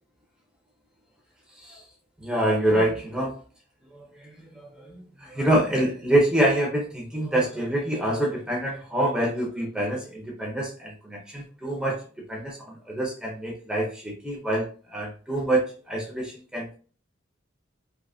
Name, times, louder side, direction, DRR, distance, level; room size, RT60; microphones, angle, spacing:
voice 1, 2.2-3.4 3.9-12.0 12.3-14.6 14.9-16.7, right 1 dB, 5° right, -2 dB, 0.8 m, -26 dB
3.5 x 2.9 x 2.7 m, 0.39 s
head